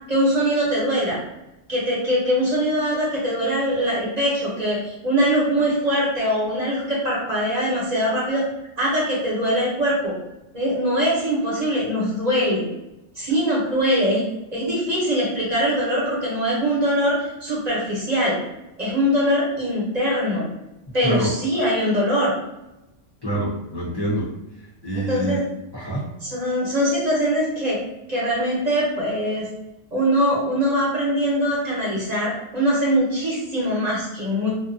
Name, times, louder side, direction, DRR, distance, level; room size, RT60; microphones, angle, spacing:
voice 1, 0.1-1.2 1.7-8.4 8.8-10.1 10.5-12.6 13.2-14.2 14.5-18.4 18.8-20.4 20.9-22.3 25.1-25.4 26.2-27.8 28.1-29.5 29.9-34.5, equal, 40° right, -6 dB, 0.8 m, -22 dB
voice 2, 23.2-24.3 24.8-25.4 25.7-26.1, right 1 dB, 35° left, -8 dB, 0.4 m, -25 dB
2.5 x 2.2 x 2.5 m, 0.94 s
omnidirectional pair, 1.3 m